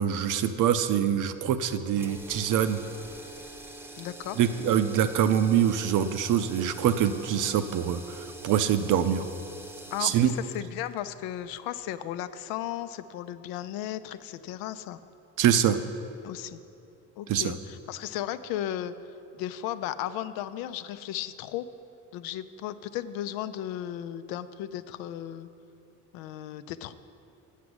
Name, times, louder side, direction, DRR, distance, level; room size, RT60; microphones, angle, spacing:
voice 1, 0.0-2.8 4.4-9.2 10.0-10.3 15.4-15.8 17.3-17.6, right 9 dB, 65° right, 11 dB, 0.6 m, -24 dB
sound 1, 1.9-12.0, right 2 dB, 5° right, 0.7 m, -45 dB
voice 2, 4.0-4.4 9.9-15.0 16.2-16.6 17.2-18.9 19.3-21.7 22.1-25.5 26.1-26.9, left 12 dB, 85° left, 13 dB, 0.5 m, -35 dB
8.3 x 6.0 x 7.8 m, 2.7 s
cardioid pair, 100°, 34 cm